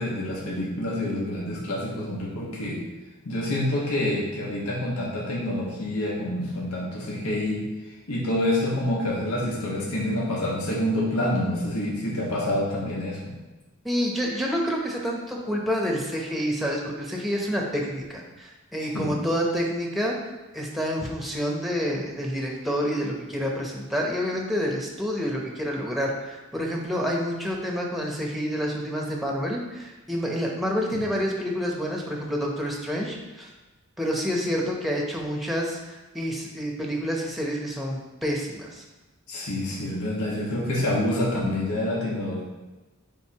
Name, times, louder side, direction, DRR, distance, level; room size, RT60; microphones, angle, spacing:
voice 1, 0.0-2.8 3.2-13.3 18.9-19.2 30.9-31.0 39.3-42.4, left 1 dB, 85° left, -5 dB, 1.5 m, -27 dB
voice 2, 13.8-20.3 20.5-33.5 34.0-38.8, equal, ahead, -1 dB, 0.8 m, -28 dB
9.0 x 3.9 x 2.9 m, 1.1 s
head